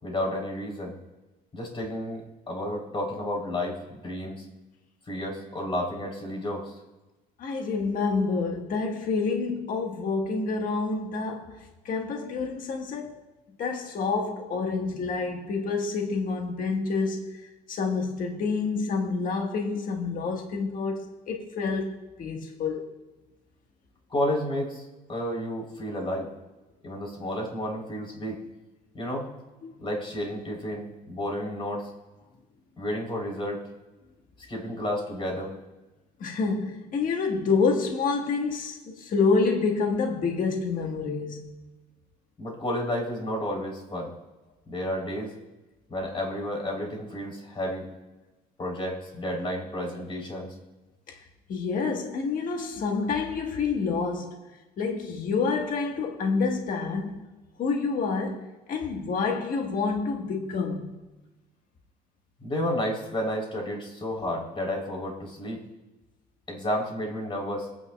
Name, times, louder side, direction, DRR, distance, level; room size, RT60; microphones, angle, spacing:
voice 1, 0.0-0.9 1.5-4.4 5.1-6.8 24.1-26.3 26.8-28.4 28.9-29.3 29.8-31.9 32.8-33.6 34.4-35.5 42.4-44.1 44.7-45.3 45.9-47.9 48.6-50.5 62.4-65.6 66.5-67.7, left 1 dB, 30° left, 3.6 m, -31 dB
voice 2, 7.4-13.2 13.6-17.4 17.7-22.8 29.6-29.8 36.2-41.5 51.1-51.2 51.5-54.4 54.8-57.2 57.6-61.0, left 4 dB, 55° left, 1.6 m, -28 dB
24.5 x 9.6 x 2.4 m
cardioid pair, 110°, 17 cm